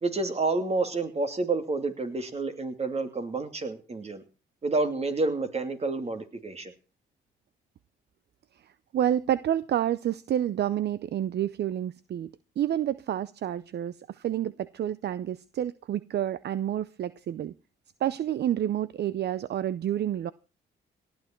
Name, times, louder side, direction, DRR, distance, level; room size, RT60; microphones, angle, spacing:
voice 1, 0.0-4.2 4.6-6.7, right 3 dB, 30° right, 2.8 m, -29 dB
voice 2, 8.6-17.5 18.0-20.3, right 11 dB, 60° right, 0.6 m, -29 dB
18.0 x 11.5 x 4.5 m
cardioid pair, 90°, 20 cm